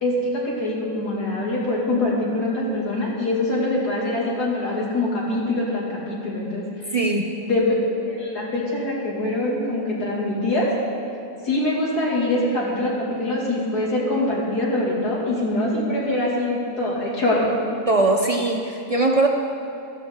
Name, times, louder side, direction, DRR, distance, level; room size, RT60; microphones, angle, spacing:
voice 1, 0.0-6.9 7.3-7.7 8.1-10.7 11.4-17.5, left 1 dB, 80° left, -5 dB, 3.0 m, -24 dB
voice 2, 6.9-7.3 17.9-19.3, right 2 dB, 50° right, 2 dB, 0.4 m, -20 dB
15.0 x 12.5 x 3.7 m, 2.8 s
omnidirectional pair, 1.7 m